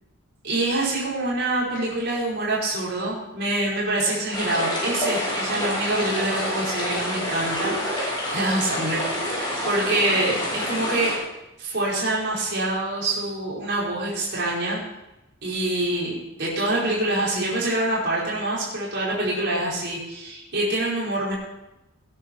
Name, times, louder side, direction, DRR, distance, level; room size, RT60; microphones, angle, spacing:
voice 1, 0.4-11.1 11.6-14.8 15.4-21.3, right 2 dB, 55° right, -6 dB, 5.0 m, -25 dB
sound 1, 4.3-11.2, left 1 dB, 25° left, 4.4 m, -28 dB
18.5 x 9.9 x 4.6 m, 0.95 s
head